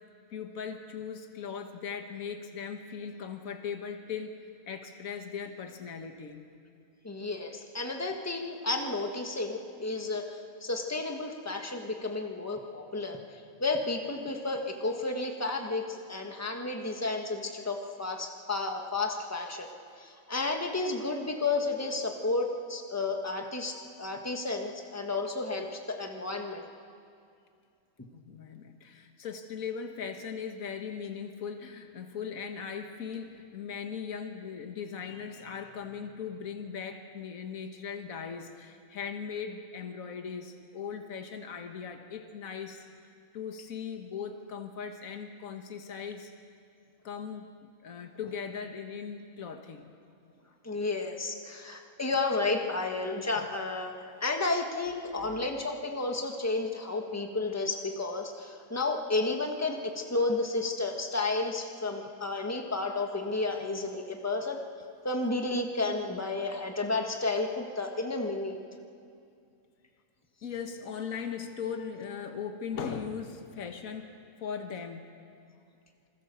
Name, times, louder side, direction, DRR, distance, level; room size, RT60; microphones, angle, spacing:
voice 1, 0.3-4.4 4.7-6.5 28.1-42.9 43.3-46.3 47.0-49.9 53.4-53.5 55.2-55.4 70.4-75.1, left 6 dB, 80° left, 5 dB, 1.7 m, -39 dB
voice 2, 7.0-19.7 20.0-26.7 50.6-64.6 65.0-68.6, left 3 dB, 10° left, 3 dB, 1.6 m, -32 dB
27.0 x 21.5 x 7.0 m, 2.4 s
omnidirectional pair, 1.5 m